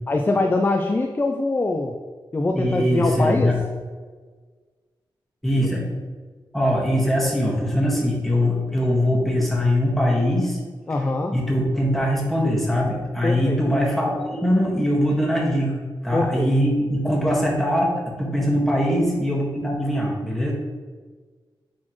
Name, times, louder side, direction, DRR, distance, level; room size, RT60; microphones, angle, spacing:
voice 1, 0.1-1.9 2.3-3.5 10.9-11.3 13.2-13.6 16.1-16.5, left 2 dB, 25° left, 3 dB, 0.4 m, -23 dB
voice 2, 2.5-3.6 5.4-5.9 6.5-10.6 11.3-15.8 16.0-20.5, equal, ahead, -4 dB, 1.8 m, -22 dB
9.5 x 4.3 x 3.2 m, 1.5 s
wide cardioid pair, 110°, 9 cm